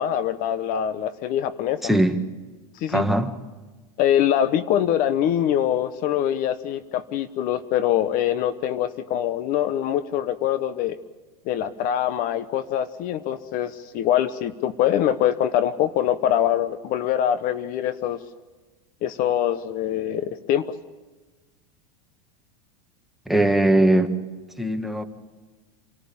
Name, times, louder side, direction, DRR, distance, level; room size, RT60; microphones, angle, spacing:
voice 1, 0.0-1.8 2.7-3.1 4.0-10.9 11.5-18.2 19.0-20.7, left 10 dB, 45° left, 13 dB, 1.0 m, -24 dB
voice 2, 1.8-2.2 2.9-3.3 23.3-24.1 24.6-25.0, right 1 dB, ahead, 5 dB, 1.6 m, -20 dB
26.5 x 14.5 x 8.6 m, 1.3 s
supercardioid pair, 130°, 20 cm